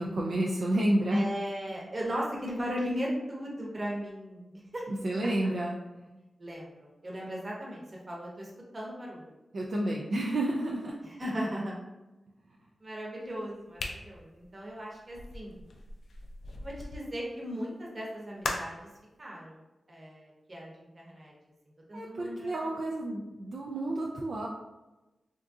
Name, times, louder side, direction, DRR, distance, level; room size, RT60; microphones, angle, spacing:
voice 1, 0.0-1.2 4.9-5.8 9.5-10.9 21.9-24.5, right 1 dB, 60° right, -2 dB, 0.4 m, -30 dB
voice 2, 1.1-4.8 6.4-7.8 8.1-9.2 11.0-11.8 12.8-15.6 16.6-18.8 19.2-19.6 19.9-21.3 21.9-22.5, equal, 35° right, -3 dB, 0.9 m, -37 dB
sound 1, 13.7-17.0 18.4-18.9, left 2 dB, 80° left, 0.4 m, -39 dB
3.5 x 2.6 x 2.4 m, 1.0 s
wide cardioid pair, 90°, 0 cm